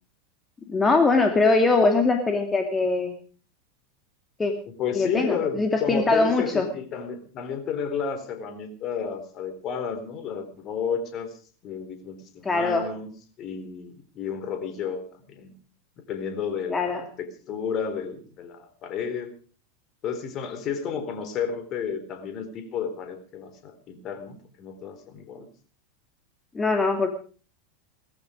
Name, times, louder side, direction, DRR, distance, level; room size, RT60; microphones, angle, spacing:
voice 1, 0.7-3.1 4.4-4.5 4.9-6.7 12.4-12.9 16.7-17.0 26.5-27.1, left 3 dB, 15° left, 4 dB, 2.4 m, -22 dB
voice 2, 4.8-11.3 11.6-13.1 13.4-15.5 16.1-19.3 20.0-25.5, left 6 dB, 40° left, 9 dB, 4.0 m, -32 dB
19.0 x 15.0 x 5.0 m, 0.41 s
figure-of-eight pair, 85°, 0 cm